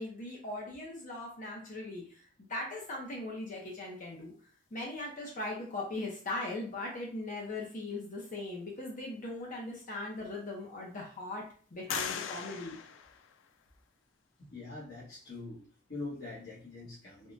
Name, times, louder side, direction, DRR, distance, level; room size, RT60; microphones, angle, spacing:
voice 1, 0.0-4.3 4.7-11.4 11.7-12.8, left 2 dB, 45° left, -1 dB, 0.7 m, -39 dB
sound 1, 9.6-9.7 10.3-11.0 11.9-13.8, left 7 dB, 90° left, 0.3 m, -40 dB
voice 2, 14.4-15.6 15.9-17.3, left 3 dB, 60° left, -9 dB, 1.2 m, -43 dB
3.5 x 2.2 x 2.6 m, 0.43 s
head